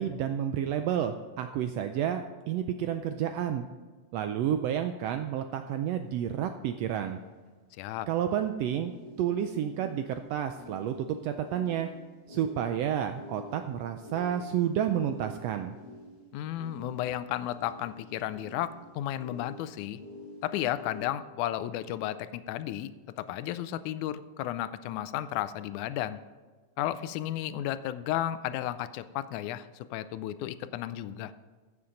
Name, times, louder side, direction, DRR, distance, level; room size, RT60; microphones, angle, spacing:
voice 1, 0.0-3.6 4.1-7.2 8.1-8.9 9.2-11.9 12.3-15.8, right 9 dB, 80° right, 8 dB, 1.5 m, -30 dB
sound 1, 5.9-6.0 6.8-6.9 8.8-21.0, left 1 dB, 30° left, 3.5 m, -48 dB
voice 2, 7.8-8.1 16.3-20.0 20.4-22.9 23.2-26.2 26.8-31.3, left 12 dB, 90° left, 13 dB, 2.0 m, -33 dB
15.0 x 7.2 x 5.1 m, 1.4 s
omnidirectional pair, 3.4 m